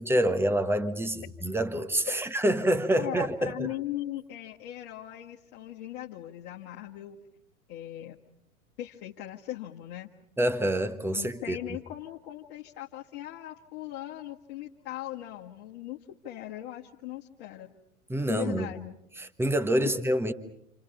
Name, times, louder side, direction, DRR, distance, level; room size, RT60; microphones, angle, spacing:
voice 1, 0.0-3.7 10.4-11.6 18.1-18.7 19.2-20.3, right 1 dB, 5° right, 1.4 m, -27 dB
voice 2, 3.0-7.2 7.7-8.2 8.8-10.1 11.1-17.7 18.3-19.0, left 13 dB, 45° left, 1.7 m, -39 dB
29.0 x 28.0 x 5.6 m
figure-of-eight pair, 90°, 44 cm